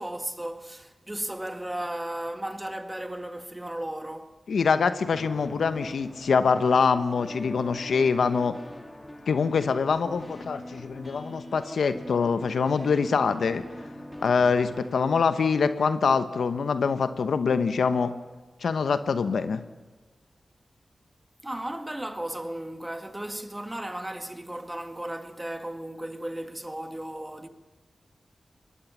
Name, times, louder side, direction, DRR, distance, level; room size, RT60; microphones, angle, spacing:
voice 1, 0.0-4.4 21.4-27.5, right 1 dB, 15° right, 2.0 m, -35 dB
voice 2, 4.5-8.6 9.3-13.6 14.2-18.1 18.6-19.6, left 5 dB, 85° left, 1.0 m, -24 dB
sound 1, 5.1-15.2, left 1 dB, 15° left, 2.6 m, -43 dB
23.0 x 20.0 x 7.4 m
cardioid pair, 40°, 0 cm